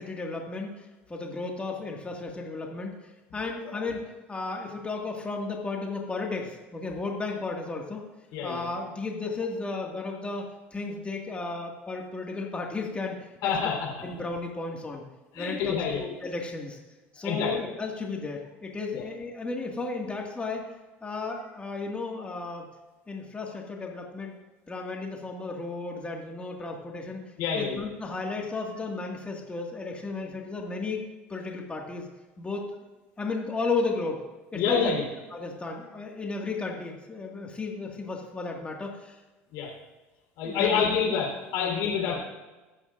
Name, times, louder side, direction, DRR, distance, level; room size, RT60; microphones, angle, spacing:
voice 1, 0.0-8.0 8.4-13.3 14.0-15.0 15.3-16.8 17.1-20.7 21.0-22.7 23.1-24.3 24.7-27.2 27.5-31.0 31.3-32.1 32.4-32.6 33.2-34.3 34.5-34.9 35.3-39.2 40.4-40.8 41.6-41.7 42.1-42.2, left 3 dB, 20° left, 0 dB, 2.0 m, -34 dB
voice 2, 8.3-8.7 13.4-13.9 15.3-16.0 17.2-17.5 18.9-19.0 27.4-27.8 34.5-35.0 39.5-39.7 40.4-42.2, left 6 dB, 65° left, 0 dB, 4.0 m, -27 dB
23.0 x 8.7 x 2.6 m, 1.2 s
hypercardioid pair, 75°, 6 cm